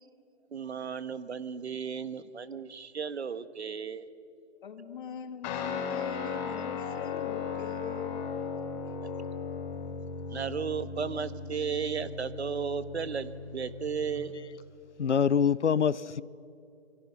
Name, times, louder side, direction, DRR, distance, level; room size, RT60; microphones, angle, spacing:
voice 1, 0.5-4.0 9.0-9.1 10.3-14.3, right 6 dB, 70° right, 14 dB, 1.5 m, -34 dB
voice 2, 4.6-8.2, left 7 dB, 50° left, 7 dB, 2.6 m, -41 dB
Guitar, 5.4-14.2, left 5 dB, 20° left, 3.5 m, -37 dB
voice 3, 15.0-16.2, left 7 dB, 90° left, 19 dB, 0.7 m, -25 dB
28.0 x 24.5 x 5.9 m, 2.7 s
figure-of-eight pair, 145°, 34 cm